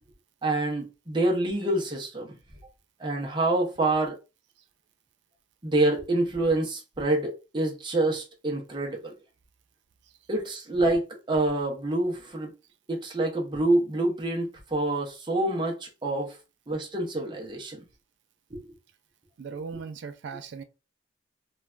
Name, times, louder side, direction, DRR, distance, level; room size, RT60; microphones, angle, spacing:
voice 1, 0.4-2.3 3.0-4.2 5.6-9.1 10.3-12.5 12.9-16.3 16.7-17.8 18.5-18.6, right 2 dB, 25° right, 0.6 m, -27 dB
voice 2, 19.4-20.6, right 5 dB, 60° right, 0.3 m, -38 dB
3.1 x 2.2 x 2.4 m
head